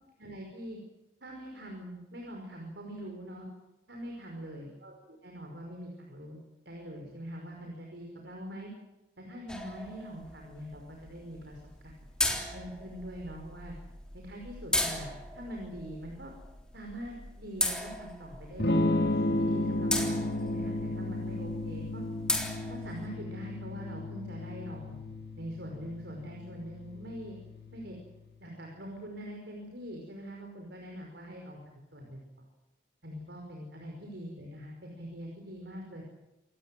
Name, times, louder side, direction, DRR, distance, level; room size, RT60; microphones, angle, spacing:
voice 1, 0.2-0.8 1.2-3.5 3.9-8.7 9.2-12.0 12.5-13.7 14.1-16.3 16.7-22.0 22.7-25.0 25.4-27.4 27.7-28.0 28.4-32.2 33.0-36.0, equal, 70° right, 1 dB, 5.6 m, -43 dB
sound 1, 9.5-23.1, left 1 dB, 5° left, 3.6 m, -37 dB
Electric guitar / Strum, 18.6-28.4, left 1 dB, 60° left, 1.9 m, -33 dB
27.0 x 19.5 x 7.9 m, 0.99 s
head